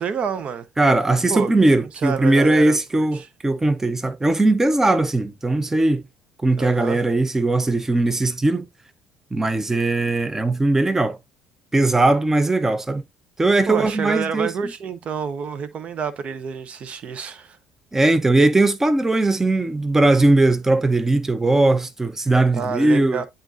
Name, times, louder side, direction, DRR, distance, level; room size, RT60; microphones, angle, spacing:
voice 1, 0.0-0.7 1.3-1.5 2.0-3.3 6.6-7.0 13.7-17.6 22.5-23.2, right 6 dB, 45° right, 0.9 m, -28 dB
voice 2, 0.8-6.0 6.4-8.7 9.3-11.2 11.7-13.0 13.4-14.5 17.9-23.2, right 2 dB, 15° right, 0.9 m, -19 dB
10.0 x 3.9 x 2.7 m
figure-of-eight pair, 55°, 3 cm